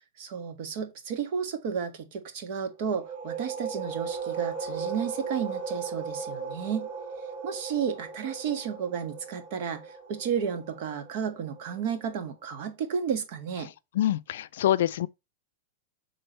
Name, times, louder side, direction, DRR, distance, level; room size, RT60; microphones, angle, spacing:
voice 1, 0.2-6.9 7.4-9.8 10.1-13.7, right 7 dB, 60° right, 1.7 m, -32 dB
sound 1, 2.8-12.2, right 5 dB, 45° right, 2.5 m, -37 dB
voice 2, 13.9-15.1, left 12 dB, 80° left, 0.4 m, -25 dB
6.9 x 3.7 x 4.4 m
supercardioid pair, 135°, 0 cm